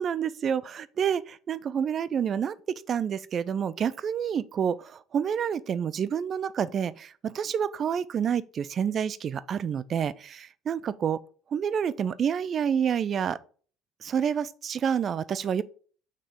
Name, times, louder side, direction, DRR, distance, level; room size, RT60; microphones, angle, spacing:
voice 1, 0.0-11.2 11.5-13.4 14.0-15.6, right 8 dB, 40° right, 0.4 m, -28 dB
6.1 x 4.5 x 3.7 m
figure-of-eight pair, 60°, 0 cm